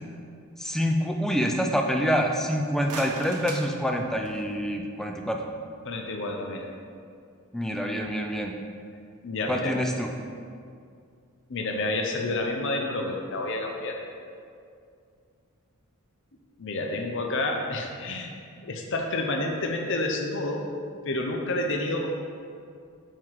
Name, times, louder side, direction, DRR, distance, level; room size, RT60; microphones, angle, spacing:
voice 1, 0.6-5.5 7.5-8.5 9.5-10.1, equal, ahead, 2 dB, 0.4 m, -26 dB
sound 1, 2.5-4.6, right 2 dB, 80° right, 0.9 m, -40 dB
voice 2, 5.8-6.7 9.2-9.8 11.5-14.0 16.6-18.3 18.6-20.6 21.0-22.1, left 2 dB, 55° left, 2 dB, 0.6 m, -29 dB
5.8 x 4.5 x 4.6 m, 2.4 s
head